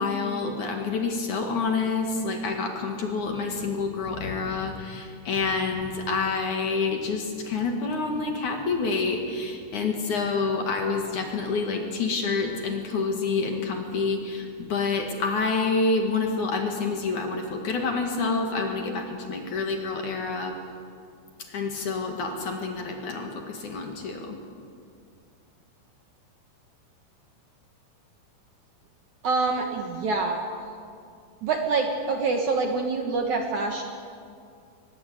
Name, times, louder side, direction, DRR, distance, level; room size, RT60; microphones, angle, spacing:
voice 1, 0.0-20.5 21.5-24.4, left 4 dB, 55° left, 3 dB, 2.9 m, -28 dB
voice 2, 29.2-30.5 31.4-33.8, right 3 dB, 60° right, 3 dB, 2.3 m, -26 dB
23.0 x 20.5 x 8.5 m, 2.3 s
omnidirectional pair, 4.9 m